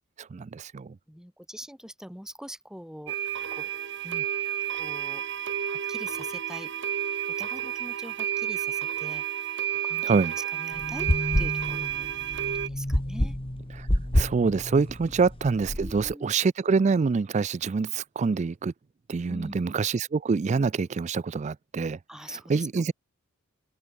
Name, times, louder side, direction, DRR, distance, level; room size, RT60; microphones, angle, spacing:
voice 1, 0.0-0.9 10.0-10.3 13.8-13.9 14.1-18.7 19.1-22.0 22.5-22.9, right 4 dB, 30° right, 0.3 m, -26 dB
voice 2, 1.1-3.2 3.5-3.7 4.0-4.3 4.8-6.7 7.3-9.5 9.8-11.1 11.4-12.1 12.4-13.4 15.8-16.3 19.3-19.8 22.1-22.7, equal, 5° right, 4.4 m, -43 dB
sound 1, 3.1-12.7, right 10 dB, 55° right, 0.9 m, -31 dB
sound 2, 10.7-16.1, left 1 dB, 25° left, 1.9 m, -29 dB
open air
head